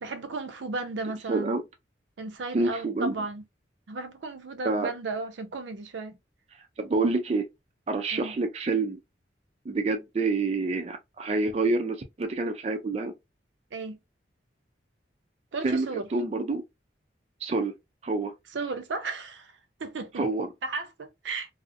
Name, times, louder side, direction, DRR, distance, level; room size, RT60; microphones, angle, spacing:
voice 1, 0.0-1.5 2.2-3.4 3.9-6.2 8.1-8.4 13.7-14.0 15.5-16.1 18.5-20.2 20.6-21.5, right 3 dB, 85° right, 0.5 m, -34 dB
voice 2, 1.3-1.6 2.5-3.1 4.6-4.9 6.8-7.5 7.9-9.0 9.7-13.1 15.6-16.6 17.4-17.7 18.0-18.3 20.2-20.5, right 3 dB, 35° right, 0.3 m, -27 dB
2.5 x 2.0 x 2.5 m
head